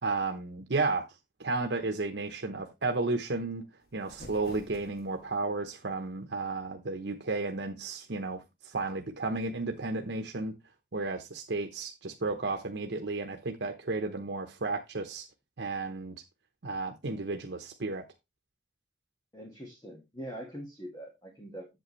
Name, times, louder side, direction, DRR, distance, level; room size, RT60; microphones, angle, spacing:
voice 1, 0.0-1.1 1.4-3.7 3.9-10.6 10.9-15.3 15.6-16.2 16.6-18.0, right 3 dB, 85° right, 0.9 m, -33 dB
sound 1, 3.8-5.4, left 1 dB, 55° left, 1.1 m, -50 dB
voice 2, 19.3-21.8, equal, 20° left, 1.8 m, -43 dB
7.9 x 7.6 x 3.1 m
head